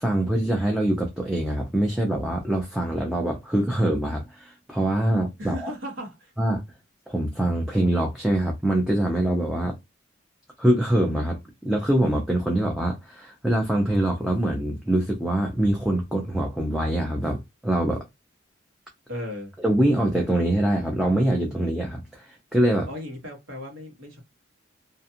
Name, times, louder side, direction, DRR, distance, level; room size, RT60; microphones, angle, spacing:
voice 1, 0.0-5.7 6.4-6.6 7.1-9.7 10.6-18.0 19.6-22.9, right 1 dB, ahead, 0.5 m, -24 dB
voice 2, 5.4-6.3 19.1-19.5 22.8-24.2, left 1 dB, 75° right, 1.2 m, -36 dB
2.5 x 2.3 x 2.7 m
head